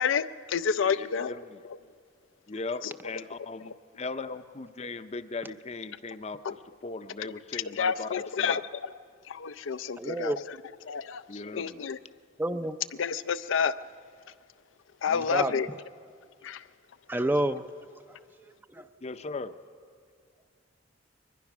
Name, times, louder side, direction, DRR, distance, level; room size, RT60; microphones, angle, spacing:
voice 1, 0.0-1.3 6.4-6.5 7.5-8.6 9.3-10.6 10.8-12.0 13.0-13.7 15.0-15.7 16.4-16.6, left 6 dB, 85° left, 12 dB, 0.5 m, -29 dB
voice 2, 0.8-1.6 2.5-8.6 11.3-11.9 19.0-19.6, left 3 dB, 35° left, 11 dB, 0.6 m, -38 dB
voice 3, 10.0-10.4 12.4-12.8 15.1-15.5 17.1-17.7 18.1-18.2 18.7-18.9, right 1 dB, 10° right, 10 dB, 0.5 m, -29 dB
22.5 x 20.5 x 6.0 m, 2.2 s
head